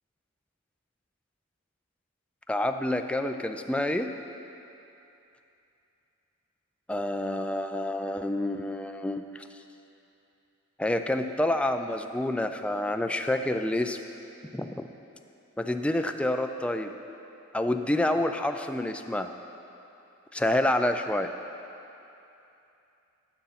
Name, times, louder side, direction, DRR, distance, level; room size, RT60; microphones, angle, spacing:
voice 1, 2.5-4.1 6.9-9.4 10.8-14.0 14.5-14.9 15.6-16.9 17.5-19.3 20.3-21.3, left 1 dB, 5° left, 6 dB, 0.3 m, -28 dB
9.2 x 6.9 x 5.7 m, 2.8 s
head